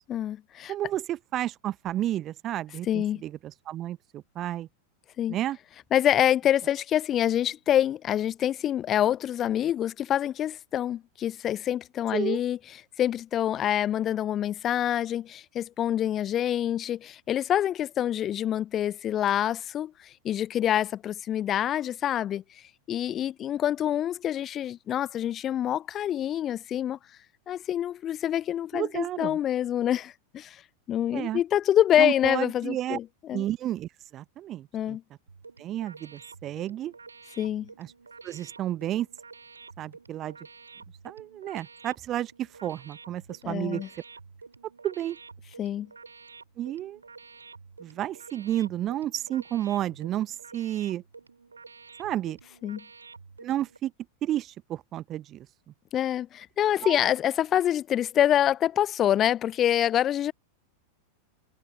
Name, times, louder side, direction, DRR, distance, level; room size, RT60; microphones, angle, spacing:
voice 1, 0.1-0.7 2.9-3.2 5.2-5.4 5.9-12.6 13.0-19.9 20.2-22.4 22.9-27.0 27.5-30.6 30.9-33.4 34.7-35.0 37.4-37.7 43.4-43.9 45.6-45.9 52.6-52.8 55.9-60.3, left 11 dB, 30° left, 0.7 m, -26 dB
voice 2, 0.7-4.7 5.3-5.6 12.1-12.4 28.7-29.4 31.1-31.4 32.0-33.0 33.3-35.0 35.6-36.9 37.8-37.9 38.2-39.1 39.8-40.4 41.0-43.8 44.8-45.2 46.6-47.0 47.8-51.0 52.0-52.4 53.4-53.9 54.2-55.5 56.8-57.0, right 12 dB, 30° right, 1.1 m, -31 dB
sound 1, 35.3-53.8, right 4 dB, 75° right, 5.5 m, -50 dB
figure-of-eight pair, 90°, 0 cm